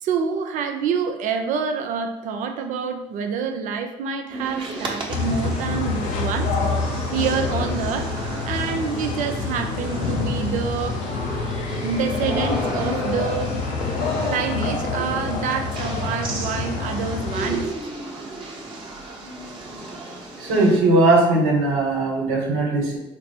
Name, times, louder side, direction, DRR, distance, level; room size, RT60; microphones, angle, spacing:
voice 1, 0.0-6.5 7.1-8.1 8.5-11.0 11.7-13.6 14.2-17.6, right 6 dB, 65° right, 6 dB, 0.5 m, -27 dB
sound 1, 4.3-20.8, right 2 dB, 35° right, 1.1 m, -34 dB
sound 2, 5.1-17.6, left 4 dB, 65° left, 0.6 m, -27 dB
voice 2, 20.4-23.0, right 2 dB, 80° right, -2 dB, 1.2 m, -19 dB
4.1 x 2.0 x 4.3 m, 0.95 s
supercardioid pair, 70°, 14 cm